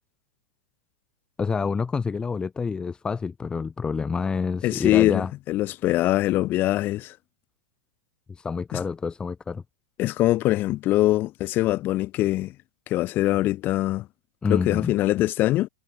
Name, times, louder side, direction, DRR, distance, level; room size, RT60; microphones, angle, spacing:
voice 1, 1.4-5.3 8.3-9.6 14.4-14.9, left 5 dB, 15° left, 4.6 m, -28 dB
voice 2, 4.6-7.2 8.7-8.8 10.0-12.5 12.9-14.1 14.5-15.7, left 16 dB, 40° left, 3.9 m, -23 dB
hypercardioid pair, 100°, 5 cm